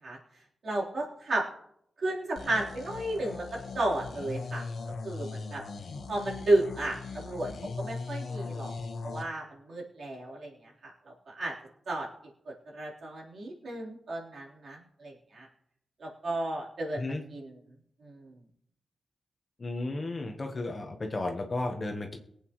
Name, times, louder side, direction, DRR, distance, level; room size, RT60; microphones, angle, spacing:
voice 1, 0.6-1.4 2.0-3.4 3.7-4.6 5.0-5.6 6.1-8.7 9.0-10.7 11.3-11.5 11.9-12.1 12.5-15.5 16.0-17.5 18.0-18.3, right 2 dB, 55° right, -4 dB, 3.8 m, -33 dB
sound 1, 2.4-9.2, left 4 dB, 70° left, 1.3 m, -39 dB
voice 2, 19.6-22.2, left 2 dB, 25° left, 3 dB, 1.2 m, -33 dB
23.0 x 8.3 x 3.1 m, 0.71 s
wide cardioid pair, 175°, 0 cm